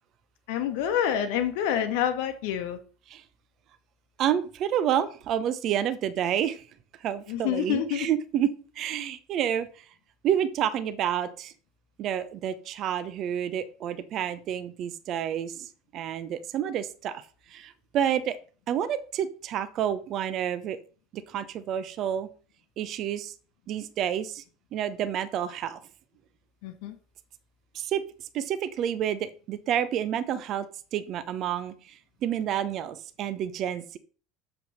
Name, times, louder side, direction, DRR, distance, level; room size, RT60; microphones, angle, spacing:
voice 1, 0.5-2.8 7.3-8.1 26.6-26.9, left 9 dB, 60° left, 8 dB, 1.1 m, -27 dB
voice 2, 4.2-6.6 7.0-9.7 10.2-11.5 12.0-17.2 17.5-18.4 18.7-20.8 21.1-22.3 22.8-23.3 23.7-24.4 24.7-25.8 27.7-28.0 28.3-30.7 30.9-34.0, right 9 dB, 45° right, 15 dB, 0.8 m, -29 dB
7.4 x 5.7 x 5.5 m, 0.39 s
figure-of-eight pair, 70°, 0 cm